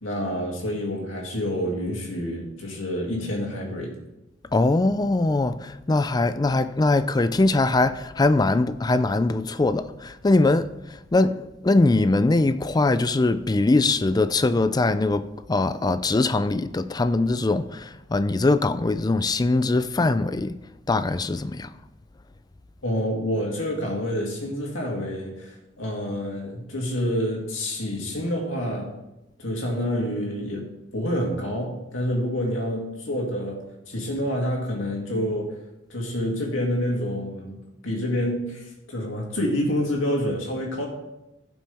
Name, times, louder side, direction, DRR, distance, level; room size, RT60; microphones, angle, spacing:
voice 1, 0.0-3.9 22.8-28.9 29.4-35.6 35.9-40.9, equal, 85° left, 2.5 m, -28 dB
voice 2, 4.5-10.7 11.1-20.6 20.9-21.7, left 2 dB, 20° left, 0.4 m, -22 dB
16.0 x 6.1 x 3.5 m
head